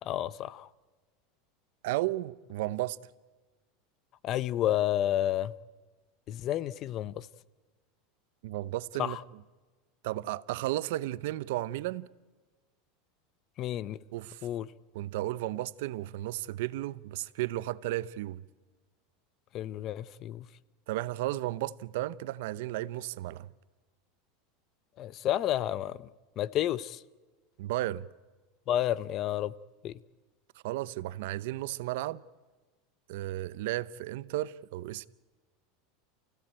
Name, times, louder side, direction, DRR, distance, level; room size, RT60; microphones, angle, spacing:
voice 1, 0.0-0.7 4.2-5.5 6.3-7.3 9.0-9.2 13.6-14.0 14.4-14.7 19.5-20.5 25.0-26.0 26.4-27.0 28.7-29.5 29.8-29.9, left 12 dB, 40° left, 0.7 m, -30 dB
voice 2, 1.8-3.0 8.4-9.2 10.0-12.1 14.1-14.5 14.9-18.4 20.9-23.5 27.6-28.1 30.6-32.2 33.1-35.1, right 16 dB, 70° right, 0.8 m, -34 dB
29.5 x 16.0 x 8.8 m
supercardioid pair, 145°, 0 cm